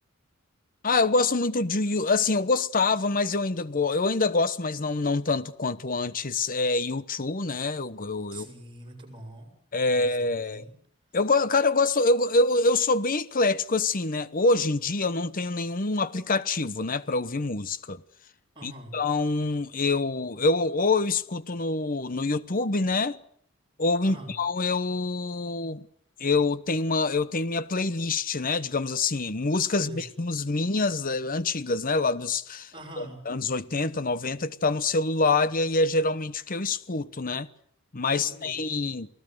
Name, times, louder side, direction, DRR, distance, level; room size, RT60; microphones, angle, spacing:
voice 1, 0.8-8.5 9.7-10.7 11.1-18.0 18.6-23.2 23.8-25.9 26.2-32.7 33.0-37.5 37.9-39.1, left 3 dB, 40° left, 1.0 m, -26 dB
voice 2, 8.3-9.5 9.9-10.7 18.6-19.0 24.0-24.3 29.7-30.0 32.7-33.2 38.0-38.5, right 1 dB, 25° right, 7.0 m, -44 dB
28.0 x 19.0 x 7.8 m
head